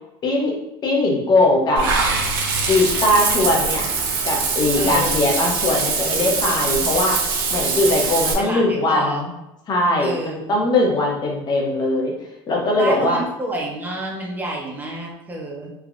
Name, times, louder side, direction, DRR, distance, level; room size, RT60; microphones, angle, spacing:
voice 1, 0.2-0.5 0.8-1.9 2.7-3.9 4.2-7.2 7.5-9.3 9.7-12.1 12.5-13.2, left 2 dB, 40° left, -1 dB, 0.8 m, -20 dB
Water / Bathtub (filling or washing), 1.8-8.3, right 4 dB, 90° right, 0.5 m, -22 dB
voice 2, 4.7-5.5 8.4-9.2 10.0-10.6 12.8-15.7, right 1 dB, 15° right, -1 dB, 0.8 m, -29 dB
3.4 x 2.2 x 2.4 m, 0.90 s
supercardioid pair, 105°, 11 cm